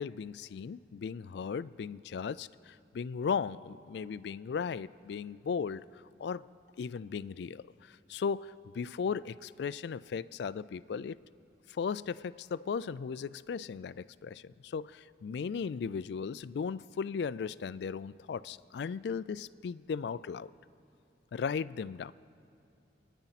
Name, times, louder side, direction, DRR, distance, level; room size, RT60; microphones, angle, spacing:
voice 1, 0.0-6.5 6.8-11.2 11.7-20.5 21.3-22.1, left 6 dB, 65° left, 18 dB, 0.3 m, -36 dB
27.5 x 10.0 x 4.1 m, 2.7 s
head